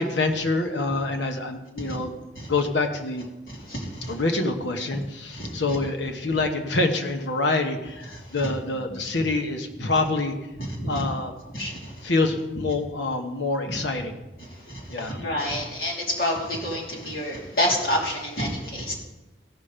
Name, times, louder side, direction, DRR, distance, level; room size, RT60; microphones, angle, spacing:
voice 1, 0.0-2.1 2.5-3.2 4.1-10.4 10.9-11.3 12.0-14.2 14.9-15.2, left 2 dB, 70° left, 5 dB, 1.1 m, -26 dB
voice 2, 3.5-4.1 5.4-5.8 10.8-11.0 11.5-12.1 14.7-18.9, left 1 dB, 50° left, -3 dB, 2.7 m, -28 dB
16.0 x 5.6 x 5.1 m, 1.0 s
head